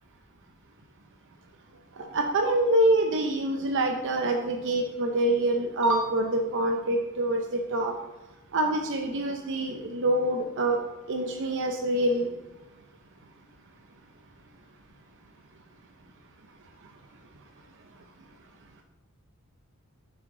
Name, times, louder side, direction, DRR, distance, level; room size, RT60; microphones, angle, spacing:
voice 1, 2.1-7.9 8.5-10.8 11.1-12.3, right 1 dB, 55° right, 3 dB, 0.6 m, -25 dB
6.4 x 6.0 x 3.7 m, 1.1 s
head